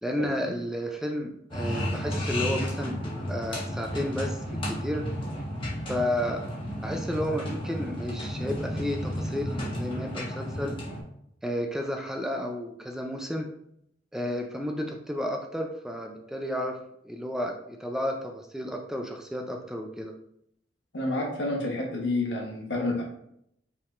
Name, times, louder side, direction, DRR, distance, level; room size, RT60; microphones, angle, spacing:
voice 1, 0.0-5.1 5.9-6.5 6.8-10.8 11.4-13.5 14.1-20.1, equal, 5° right, 2 dB, 0.4 m, -32 dB
sound 1, 1.5-11.0, equal, 30° left, 1.2 m, -32 dB
voice 2, 20.9-23.0, left 2 dB, 75° left, -1 dB, 1.2 m, -29 dB
5.4 x 3.6 x 2.5 m, 0.73 s
head